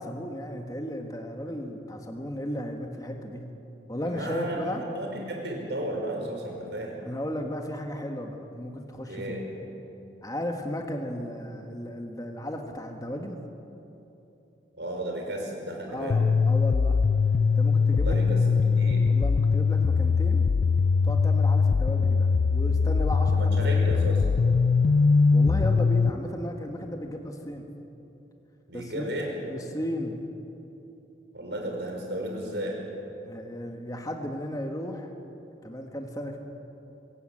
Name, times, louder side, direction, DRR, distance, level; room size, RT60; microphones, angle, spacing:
voice 1, 0.0-3.5 3.9-4.8 7.0-9.2 10.2-13.4 15.9-17.0 17.6-18.3 19.0-20.5 21.0-24.1 25.3-27.7 28.7-29.1 29.5-30.2 33.2-35.1 35.6-36.4, equal, 20° left, 3 dB, 1.5 m, -35 dB
voice 2, 4.1-7.0 9.1-9.5 14.7-16.2 17.9-19.1 23.3-24.2 28.7-29.3 31.3-32.8, right 1 dB, 75° right, 1 dB, 5.2 m, -34 dB
sound 1, 16.1-26.1, left 5 dB, 65° left, 0.4 m, -22 dB
25.0 x 15.5 x 8.9 m, 2.9 s
head